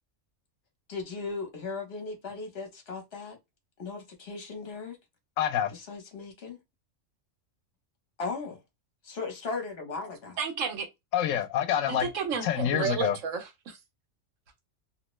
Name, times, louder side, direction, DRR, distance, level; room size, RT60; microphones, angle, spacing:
voice 1, 0.9-3.4 3.8-5.0 5.7-6.6 8.2-8.6 9.0-10.4, left 4 dB, 55° left, 1.2 m, -37 dB
voice 2, 5.4-5.7 11.1-12.1 12.4-13.2, left 10 dB, 90° left, 1.0 m, -26 dB
voice 3, 10.4-10.9 11.9-13.8, right 6 dB, 85° right, 1.2 m, -32 dB
2.9 x 2.1 x 3.0 m
omnidirectional pair, 1.3 m